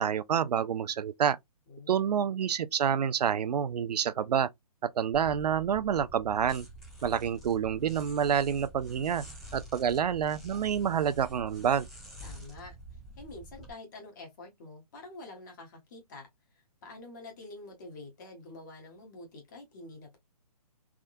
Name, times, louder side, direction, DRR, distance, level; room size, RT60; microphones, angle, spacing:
voice 1, 0.0-1.4 1.9-4.5 4.8-6.7 7.0-9.2 9.5-11.9, right 8 dB, 80° right, 0.4 m, -28 dB
voice 2, 1.7-2.2 12.2-12.7 13.2-20.2, left 2 dB, 30° left, 1.1 m, -47 dB
sound 1, 5.1-13.7, right 1 dB, ahead, 1.1 m, -48 dB
3.6 x 2.2 x 2.5 m
hypercardioid pair, 165°, 20 cm